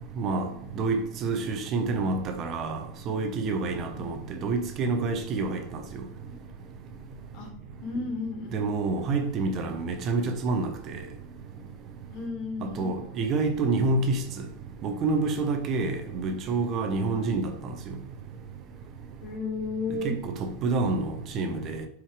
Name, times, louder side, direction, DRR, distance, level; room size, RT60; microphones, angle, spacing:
voice 1, 0.2-5.6 8.5-11.0 12.6-14.5 14.8-18.0 20.0-21.9, right 3 dB, 40° right, 1.0 m, -28 dB
voice 2, 7.8-8.6 12.1-12.9 17.1-17.3 19.2-20.1, left 3 dB, 50° left, 2.7 m, -33 dB
6.9 x 4.9 x 5.1 m
supercardioid pair, 130°, 0 cm